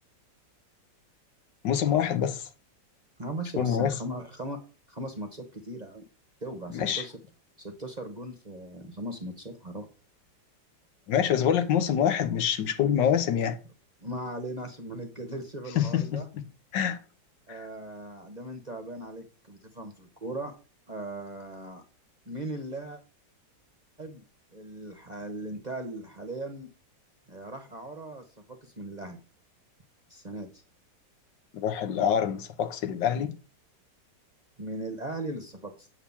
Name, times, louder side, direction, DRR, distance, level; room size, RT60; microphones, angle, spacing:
voice 1, 1.6-2.5 3.6-4.0 6.7-7.1 11.1-13.6 15.8-16.4 16.7-17.0 17.5-17.7 31.5-33.3, left 9 dB, 80° left, 1.6 m, -26 dB
voice 2, 3.2-4.6 4.9-6.0 6.4-7.2 7.6-9.9 14.0-16.3 17.5-20.5 20.9-21.8 22.3-23.0 24.0-24.2 24.5-26.7 27.3-29.2 30.1-30.6 34.6-35.9, right 1 dB, 30° right, 0.9 m, -38 dB
8.6 x 4.0 x 7.1 m
omnidirectional pair, 2.0 m